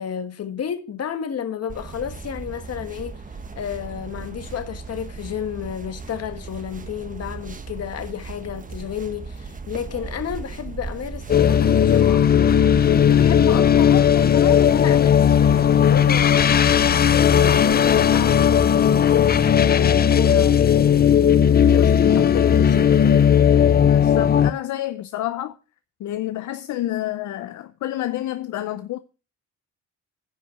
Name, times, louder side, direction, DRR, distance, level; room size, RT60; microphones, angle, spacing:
voice 1, 0.0-3.2 3.5-12.5 12.8-16.6 17.1-21.1 21.6-23.3, left 8 dB, 55° left, 1.5 m, -31 dB
sound 1, 1.7-18.7, right 4 dB, 25° right, 1.1 m, -37 dB
sound 2, 11.3-24.5, left 8 dB, 30° left, 0.5 m, -16 dB
voice 2, 23.8-25.6 26.0-29.0, left 14 dB, 75° left, 0.7 m, -29 dB
10.0 x 5.6 x 6.2 m
cardioid pair, 90°, 30 cm